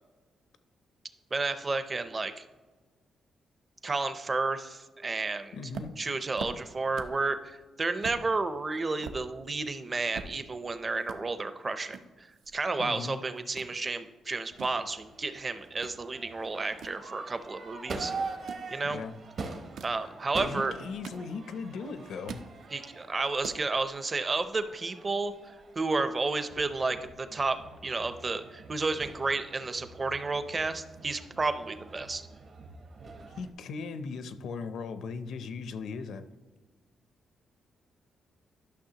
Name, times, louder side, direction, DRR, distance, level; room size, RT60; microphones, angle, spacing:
voice 1, 1.3-2.4 3.8-5.6 6.0-12.3 12.5-18.1 18.7-19.0 19.8-20.7 22.7-27.6 27.8-32.2, right 3 dB, 25° right, 11 dB, 0.5 m, -31 dB
voice 2, 5.5-5.9 12.8-13.2 18.9-19.1 20.4-22.4 33.4-36.2, left 5 dB, 75° left, 11 dB, 0.5 m, -38 dB
sound 1, 5.7-7.3 7.6-7.7 8.0-8.2 8.7-10.7 11.0-11.2 11.9-13.1 13.3-13.7 14.3-16.0 16.4-17.7 18.3-18.7 19.5-20.0 20.7-21.6 22.0-22.5 22.9-23.0 23.2-23.6, right 5 dB, 90° right, 0.6 m, -44 dB
Crowd / Fireworks, 14.5-33.5, right 3 dB, 45° right, 0.8 m, -44 dB
11.5 x 6.2 x 2.8 m, 1.3 s
cardioid pair, 150°, 0 cm